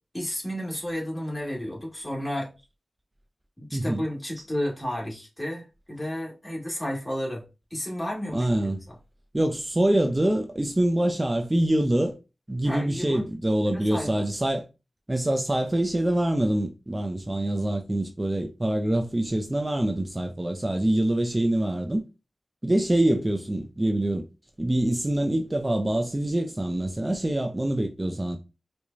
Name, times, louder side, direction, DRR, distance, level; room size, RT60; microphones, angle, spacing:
voice 1, 0.1-2.5 3.6-7.4 7.7-8.5 12.6-13.3 13.7-14.1, equal, 20° left, 1.8 m, -32 dB
voice 2, 3.7-4.0 8.3-8.8 9.3-12.2 12.5-14.7 15.1-22.0 22.6-24.2 24.6-28.4, right 1 dB, 25° right, 0.5 m, -25 dB
4.7 x 2.1 x 2.6 m
cardioid pair, 50°, 0 cm